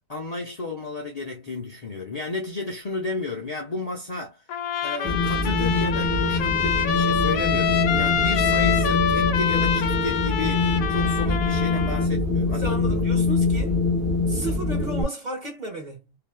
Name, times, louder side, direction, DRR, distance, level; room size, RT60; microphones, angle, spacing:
voice 1, 0.1-4.4 4.8-13.0, left 3 dB, 85° left, 0.3 m, -32 dB
Trumpet, 4.5-12.1, left 8 dB, 70° left, 0.9 m, -26 dB
Wind, 5.0-15.0, left 3 dB, ahead, 1.0 m, -24 dB
voice 2, 12.5-13.8 14.3-16.2, right 2 dB, 30° right, 1.0 m, -34 dB
2.8 x 2.5 x 2.2 m
omnidirectional pair, 1.9 m